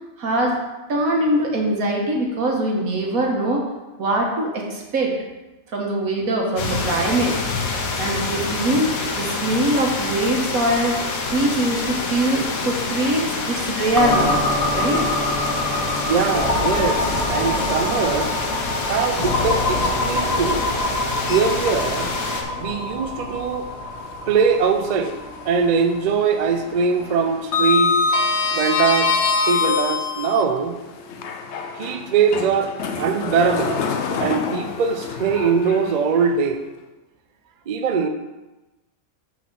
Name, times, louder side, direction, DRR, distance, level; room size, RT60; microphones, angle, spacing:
voice 1, 0.2-0.6 0.9-3.6 4.0-5.1 5.7-7.3 8.0-14.4 14.7-15.0, right 1 dB, 90° right, 0 dB, 1.7 m, -22 dB
sound 1, 6.6-22.4, left 4 dB, 85° left, 1.3 m, -27 dB
sound 2, 14.0-27.5, left 1 dB, 35° left, 0.7 m, -25 dB
voice 2, 16.0-18.3 18.9-20.6 21.2-22.1 22.6-23.7 24.3-25.2 25.4-27.9 28.5-30.8 31.7-33.7 34.2-36.6 37.7-38.1, right 5 dB, 55° right, 7 dB, 0.4 m, -21 dB
Sliding door, 21.2-22.2 22.6-22.7 24.4-25.4 25.7-26.1 26.3-30.4 31.1-36.3, left 4 dB, 65° left, 0.9 m, -24 dB
5.7 x 4.3 x 5.9 m, 1.1 s
omnidirectional pair, 1.4 m